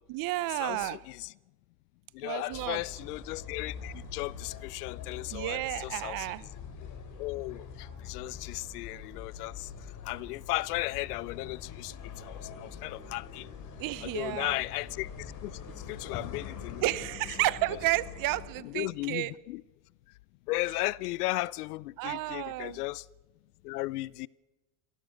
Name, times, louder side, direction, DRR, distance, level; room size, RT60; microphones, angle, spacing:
voice 1, 0.1-1.0 2.2-2.8 5.3-6.4 13.8-14.6 16.8-19.3 22.0-22.8, right 18 dB, 45° right, 0.9 m, -32 dB
voice 2, 0.6-1.3 2.1-6.3 7.2-9.7 10.0-11.9 12.2-13.5 14.0-15.1 15.4-15.5 15.9-16.8 18.6-19.6 20.5-23.0 23.6-24.3, left 20 dB, 85° left, 0.7 m, -35 dB
sound 1, 2.5-18.5, left 6 dB, 40° left, 4.6 m, -44 dB
24.5 x 18.0 x 6.5 m
supercardioid pair, 120°, 45 cm